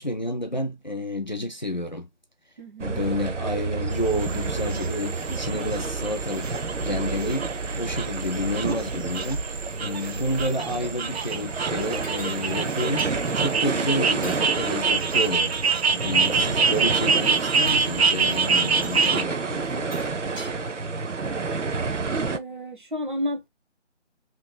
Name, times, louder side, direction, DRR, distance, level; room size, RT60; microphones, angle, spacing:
voice 1, 0.0-2.1 2.8-6.6 6.8-19.9, left 1 dB, 40° left, 0.5 m, -30 dB
voice 2, 2.6-3.1 22.2-23.5, left 1 dB, 45° right, 1.1 m, -32 dB
sound 1, 2.8-22.4, right 4 dB, 85° right, 0.9 m, -30 dB
sound 2, 3.9-19.2, right 5 dB, 60° right, 0.5 m, -26 dB
sound 3, 12.0-12.3 13.0-13.2 14.1-14.4 15.1-16.0 17.5-17.9 18.8-19.0 19.7-20.5, right 1 dB, 10° right, 1.2 m, -42 dB
3.4 x 3.0 x 2.3 m
figure-of-eight pair, 170°, 36 cm